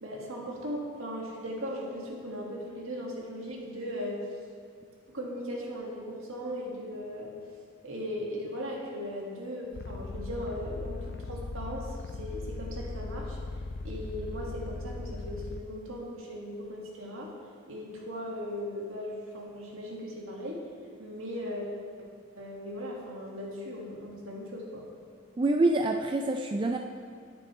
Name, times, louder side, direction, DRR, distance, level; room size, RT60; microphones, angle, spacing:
voice 1, 0.0-4.2 5.1-7.3 7.8-13.4 13.8-17.3 17.7-20.6 21.0-21.7 22.4-24.9, equal, 75° right, -2 dB, 2.0 m, -38 dB
sound 1, 9.7-15.6, left 3 dB, 50° left, 0.4 m, -38 dB
voice 2, 25.4-26.8, right 2 dB, 25° right, 3 dB, 0.3 m, -26 dB
11.0 x 9.6 x 3.3 m, 2.2 s
head